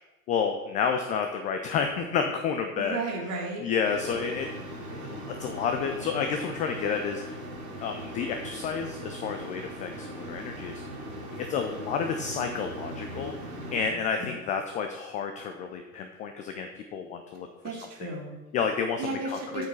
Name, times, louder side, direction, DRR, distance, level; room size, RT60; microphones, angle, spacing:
voice 1, 0.3-3.0 3.6-4.5 4.9-7.4 7.8-10.8 11.3-13.3 13.7-17.5 18.5-19.7, left 6 dB, 20° left, 5 dB, 0.3 m, -30 dB
voice 2, 2.7-3.6 4.1-4.2 14.2-14.3 17.6-18.4 19.0-19.7, right 3 dB, 35° right, 0 dB, 2.1 m, -34 dB
sound 1, 3.8-13.9, equal, 60° right, 2.5 m, -39 dB
8.1 x 5.1 x 4.6 m, 1.1 s
figure-of-eight pair, 85°, 45 cm